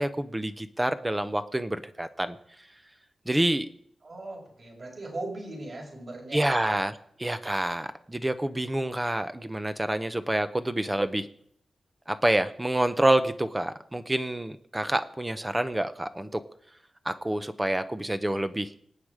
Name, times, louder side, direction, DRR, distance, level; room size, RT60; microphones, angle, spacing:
voice 1, 0.0-2.4 3.3-3.7 6.3-6.9 7.2-11.3 12.1-16.4 17.0-18.7, right 1 dB, 10° right, 11 dB, 0.7 m, -27 dB
voice 2, 4.0-6.8, right 2 dB, 45° right, -2 dB, 6.2 m, -39 dB
25.5 x 9.0 x 4.9 m, 0.67 s
wide cardioid pair, 160°, 0 cm